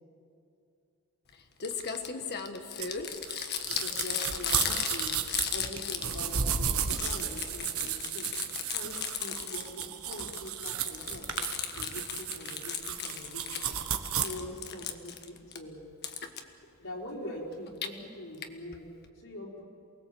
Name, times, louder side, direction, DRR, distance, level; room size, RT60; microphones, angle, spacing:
Crumpling crinkling, 1.3-1.4 1.6-6.5 6.8-9.8 10.1-13.7 14.1-15.6 16.0-16.4 17.5-17.9 18.4-18.5 18.7-18.8 19.0-19.1, left 7 dB, 50° left, 1.5 m, -36 dB
sound 1, 2.8-14.2, right 8 dB, 80° right, 1.6 m, -34 dB
voice 1, 3.7-5.2 5.5-8.3 8.7-11.5 11.8-13.8 14.2-15.8 16.8-18.9 19.1-19.6, left 1 dB, 70° left, -5 dB, 4.9 m, -43 dB
28.5 x 20.0 x 7.9 m, 2.5 s
head